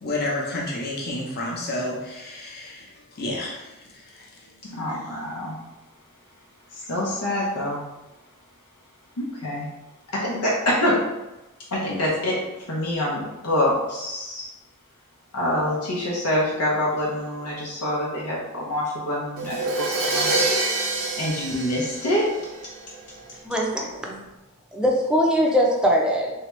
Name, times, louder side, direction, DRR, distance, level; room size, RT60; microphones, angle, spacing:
voice 1, 0.0-3.7 3.9-4.5, left 1 dB, 45° left, -3 dB, 0.8 m, -30 dB
voice 2, 4.7-5.6 6.7-7.8 9.2-9.7 10.1-11.0 11.7-12.4 12.7-14.5 15.3-20.5 21.2-22.2, left 1 dB, 85° left, -5 dB, 0.7 m, -26 dB
Crash cymbal, 19.4-23.1, right 2 dB, 60° right, 0.7 m, -26 dB
voice 3, 23.4-24.2 24.7-26.3, equal, 5° right, -1 dB, 0.5 m, -21 dB
3.3 x 2.8 x 3.1 m, 1.0 s
head